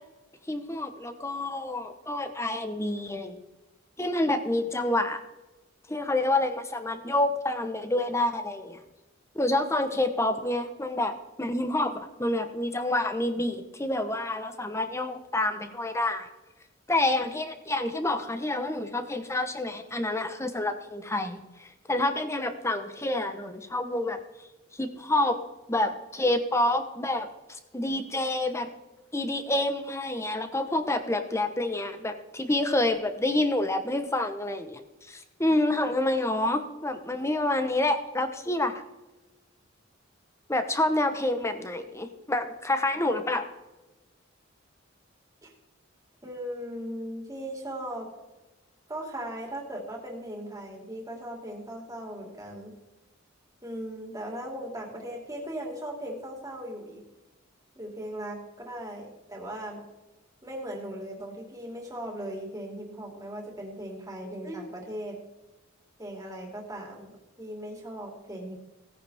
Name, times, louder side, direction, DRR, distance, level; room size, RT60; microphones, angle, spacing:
voice 1, 0.5-3.4 4.0-5.2 5.9-8.8 9.3-11.1 11.4-16.3 16.9-24.2 24.8-25.4 25.7-27.3 27.7-28.7 29.1-34.8 35.1-38.7 40.5-43.4, left 1 dB, 15° left, 8 dB, 1.0 m, -28 dB
voice 2, 46.2-48.1 48.9-52.7 53.6-57.0 57.7-59.8 60.4-65.2 66.0-68.6, right 1 dB, 15° right, 0 dB, 2.8 m, -38 dB
17.0 x 9.8 x 3.6 m, 1.1 s
head